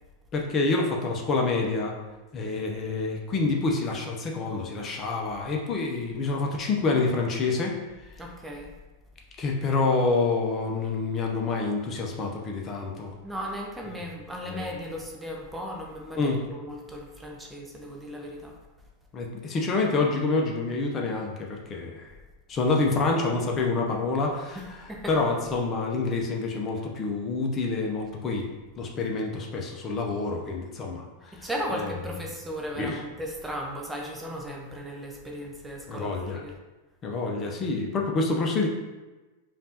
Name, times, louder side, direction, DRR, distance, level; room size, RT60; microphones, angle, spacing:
voice 1, 0.3-1.9 2.3-7.8 9.4-13.1 14.4-14.8 16.2-16.4 19.1-22.1 22.5-28.5 28.8-31.9 32.8-33.0 35.9-36.4 37.0-38.7, left 3 dB, 30° left, 0 dB, 0.7 m, -27 dB
voice 2, 8.2-8.7 13.2-18.5 24.9-25.1 31.3-36.5, equal, 10° right, 0 dB, 0.6 m, -36 dB
5.2 x 2.5 x 2.8 m, 1.2 s
figure-of-eight pair, 95°, 0 cm